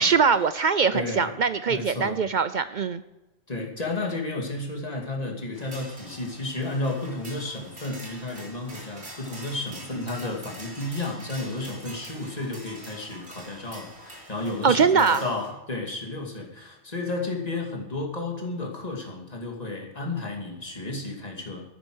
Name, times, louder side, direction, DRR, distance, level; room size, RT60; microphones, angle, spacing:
voice 1, 0.0-3.0 14.6-15.2, right 5 dB, 55° right, 13 dB, 0.6 m, -22 dB
voice 2, 0.9-1.3 1.7-2.2 3.5-21.6, left 2 dB, 35° left, 0 dB, 2.6 m, -32 dB
sound 1, 5.5-15.5, right 1 dB, 90° right, 3.8 m, -45 dB
12.5 x 10.0 x 6.3 m, 1.0 s
omnidirectional pair, 1.2 m